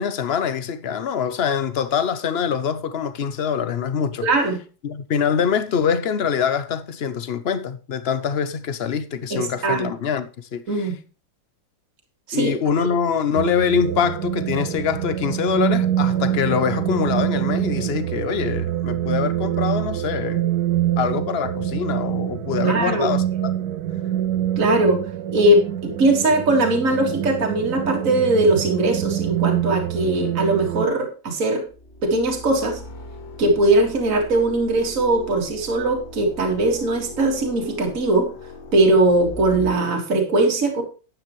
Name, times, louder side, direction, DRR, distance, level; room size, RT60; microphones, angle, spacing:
voice 1, 0.0-4.3 4.8-10.9 12.3-20.4 21.0-23.2, left 7 dB, 60° left, 0.6 m, -24 dB
voice 2, 4.2-4.6 9.3-9.9 10.7-11.0 12.3-12.5 22.6-23.1 24.6-25.0 25.3-31.6 32.0-32.8 33.4-38.3 38.7-40.8, right 2 dB, 45° right, 2.4 m, -20 dB
sound 1, 13.4-30.9, right 11 dB, 70° right, 1.0 m, -25 dB
sound 2, 31.7-39.7, left 1 dB, 85° left, 2.2 m, -39 dB
10.5 x 9.3 x 3.1 m
omnidirectional pair, 2.1 m